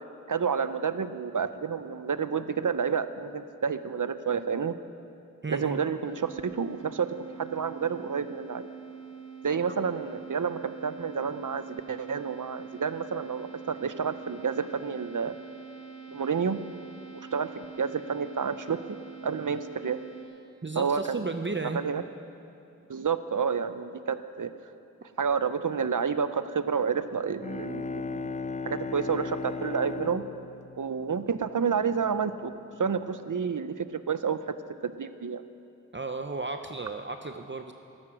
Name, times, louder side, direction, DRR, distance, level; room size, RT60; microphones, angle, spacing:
voice 1, 0.3-4.7 5.5-7.1 7.4-8.7 9.4-15.4 16.1-16.6 17.1-19.0 19.2-20.0 20.8-21.2 21.7-22.0 22.9-24.5 25.2-28.3 28.7-30.2 30.8-32.5 32.8-34.4 34.8-35.4, right 6 dB, 75° right, 12 dB, 0.6 m, -29 dB
voice 2, 5.4-5.8 9.7-9.8 20.6-21.8 35.9-37.7, right 3 dB, 35° right, 6 dB, 0.7 m, -34 dB
sound 1, 6.0-20.2, right 6 dB, 80° left, 3.8 m, -45 dB
Bowed string instrument, 27.2-31.9, left 4 dB, 25° left, 0.4 m, -37 dB
14.5 x 13.5 x 6.3 m, 2.7 s
wide cardioid pair, 50°, 31 cm